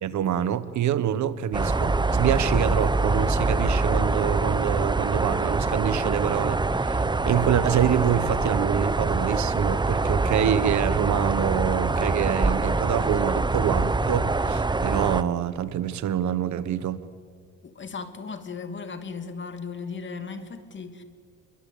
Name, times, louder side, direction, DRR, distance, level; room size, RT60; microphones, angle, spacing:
voice 1, 0.0-17.0, right 9 dB, 70° right, 1.3 m, -26 dB
sound 1, 1.5-15.2, right 3 dB, 15° right, 0.8 m, -24 dB
voice 2, 17.6-21.0, left 5 dB, 40° left, 2.7 m, -36 dB
27.5 x 23.0 x 8.6 m
cardioid pair, 90°, 30 cm